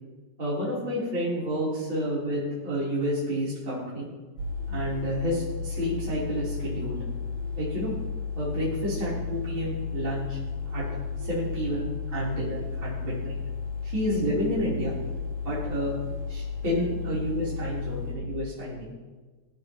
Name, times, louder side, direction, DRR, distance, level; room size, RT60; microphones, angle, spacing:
voice 1, 0.4-4.1 4.7-7.0 7.6-7.9 8.4-10.4 10.7-10.8 11.2-13.4 13.8-14.9 15.4-15.9 16.3-18.9, equal, 40° right, -9 dB, 4.3 m, -30 dB
sound 1, 4.4-18.2, left 5 dB, 70° right, 3.5 m, -33 dB
20.5 x 14.5 x 3.0 m, 1.3 s
omnidirectional pair, 3.4 m